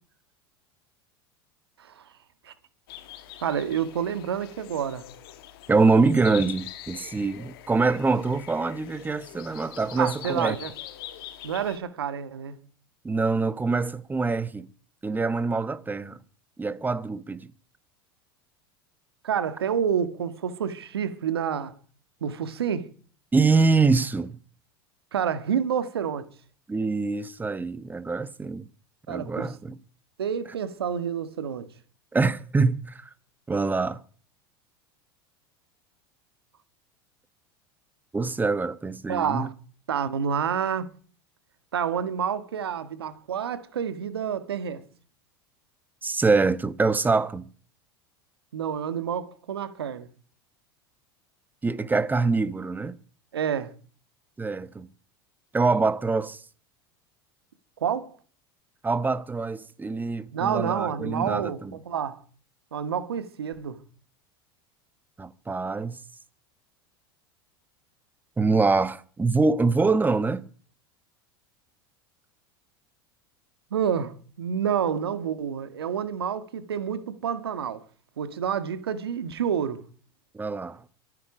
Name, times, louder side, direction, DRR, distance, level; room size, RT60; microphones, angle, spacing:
sound 1, 2.9-11.8, left 12 dB, 70° left, 1.9 m, -43 dB
voice 1, 3.4-5.0 10.0-10.7 11.4-12.5 19.2-21.7 22.2-22.9 25.1-26.3 29.1-29.6 30.2-31.7 39.1-39.5 39.9-40.9 41.7-44.8 48.5-50.1 53.3-53.7 57.8-58.1 60.3-62.2 62.7-63.8 73.7-77.8 78.2-79.8, right 8 dB, 90° right, 1.7 m, -28 dB
voice 2, 5.7-10.6 13.0-14.7 15.0-16.2 16.6-17.5 23.3-24.4 26.7-28.7 29.1-29.8 32.1-33.0 33.5-34.0 38.1-39.5 46.0-47.5 51.6-53.0 54.4-54.9 55.5-56.4 58.8-61.7 65.2-66.0 68.4-70.5 80.3-80.8, right 4 dB, 15° right, 1.2 m, -24 dB
24.0 x 9.6 x 5.0 m
hypercardioid pair, 90°, 13 cm